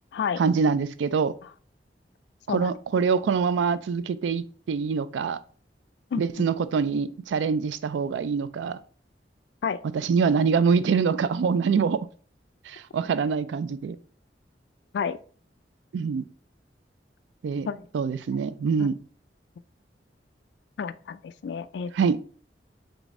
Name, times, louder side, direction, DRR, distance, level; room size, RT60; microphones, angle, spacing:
voice 1, 0.4-1.3 2.5-5.4 6.2-8.8 9.9-12.0 12.7-14.0 15.9-16.2 17.4-17.7 17.9-19.0 21.9-22.2, right 5 dB, 80° right, 15 dB, 0.3 m, -24 dB
voice 2, 20.8-21.9, left 6 dB, 70° left, 14 dB, 0.3 m, -30 dB
4.0 x 3.4 x 3.6 m, 0.43 s
head